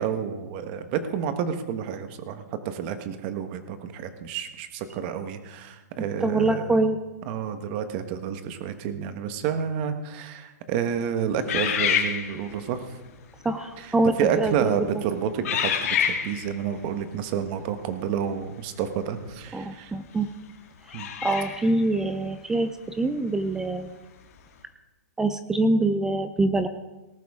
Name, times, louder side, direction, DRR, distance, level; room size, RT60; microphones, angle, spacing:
voice 1, 0.0-6.8 7.3-12.9 13.8-19.9 20.9-21.1, right 8 dB, 35° right, 9 dB, 1.2 m, -30 dB
voice 2, 6.0-7.0 13.4-14.8 19.5-20.3 21.2-23.9 25.2-26.7, right 2 dB, 5° right, 10 dB, 0.4 m, -24 dB
sound 1, 11.5-12.7 13.4-13.7 14.4-14.7 15.4-16.6 19.3-19.4 20.9-21.7, left 8 dB, 55° left, 2.1 m, -27 dB
18.5 x 11.5 x 3.6 m, 1.1 s
hypercardioid pair, 150°, 9 cm